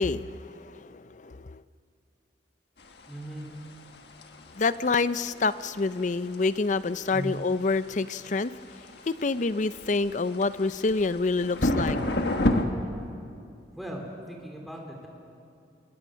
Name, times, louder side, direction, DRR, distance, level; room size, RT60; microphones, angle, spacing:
voice 1, 0.0-1.6 4.6-8.5 9.1-12.0, left 3 dB, 45° left, 15 dB, 0.5 m, -27 dB
sound 1, 2.8-12.6, left 1 dB, 65° left, 1.6 m, -31 dB
voice 2, 3.1-3.5 7.1-7.4 13.7-15.1, equal, ahead, 0 dB, 3.2 m, -37 dB
26.5 x 22.0 x 6.4 m, 2.5 s
head